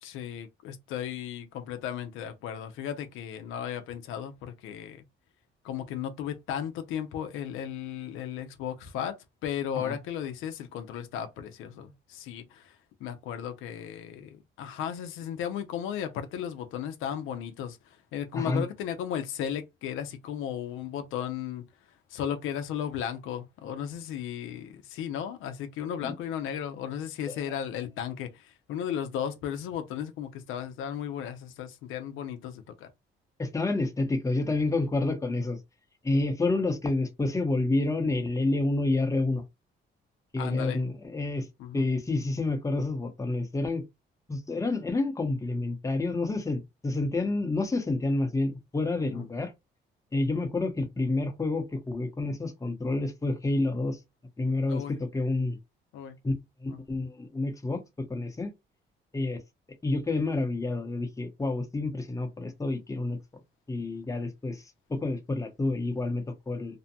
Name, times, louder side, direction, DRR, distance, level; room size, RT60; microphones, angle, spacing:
voice 1, 0.0-5.0 5.6-9.2 9.4-32.9 40.4-40.8 41.6-41.9 49.0-49.3 54.7-55.0 55.9-56.2 56.7-56.8, left 9 dB, 90° left, 0.5 m, -35 dB
voice 2, 33.4-35.6 36.0-39.4 40.3-41.5 41.7-43.8 44.3-49.5 50.1-54.0 54.4-55.6 56.2-56.3 56.6-58.5 59.1-59.4 59.8-63.2 63.7-66.8, left 2 dB, 15° left, 0.7 m, -29 dB
2.6 x 2.1 x 2.7 m
cardioid pair, 90°, 20 cm